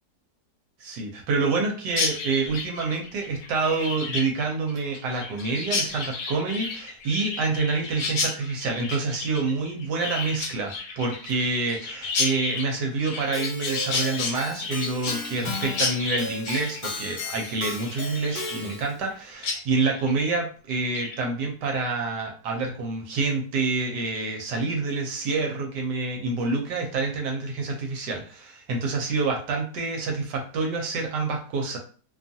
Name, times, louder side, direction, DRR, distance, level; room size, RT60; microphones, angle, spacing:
voice 1, 0.8-31.8, right 3 dB, 75° right, 1 dB, 1.2 m, -27 dB
Chirp tweet, 1.9-19.1 19.4-19.6 19.9-20.3 20.7-21.2, left 4 dB, 65° left, 1.0 m, -32 dB
Keyboard (musical), 13.3-19.0, left 2 dB, 80° left, 0.4 m, -35 dB
2.9 x 2.3 x 2.6 m, 0.41 s
omnidirectional pair, 1.9 m